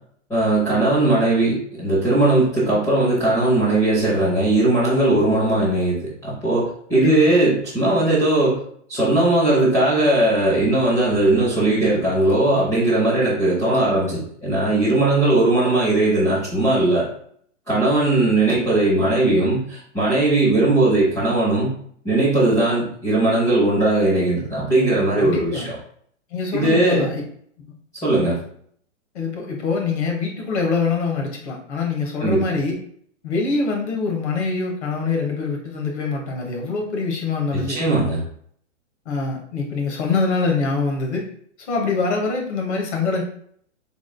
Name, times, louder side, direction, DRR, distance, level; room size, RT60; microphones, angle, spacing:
voice 1, 0.3-8.6 8.9-17.1 17.7-21.7 22.0-25.7 26.5-27.1 28.0-28.4 32.2-32.4 37.5-38.2, right 2 dB, 10° left, -10 dB, 0.9 m, -19 dB
voice 2, 25.2-25.7 26.3-27.2 29.1-32.8 33.2-37.8 39.0-41.2 41.7-43.2, left 4 dB, 60° left, 0 dB, 1.3 m, -24 dB
3.8 x 3.6 x 2.2 m, 0.62 s
hypercardioid pair, 155°, 38 cm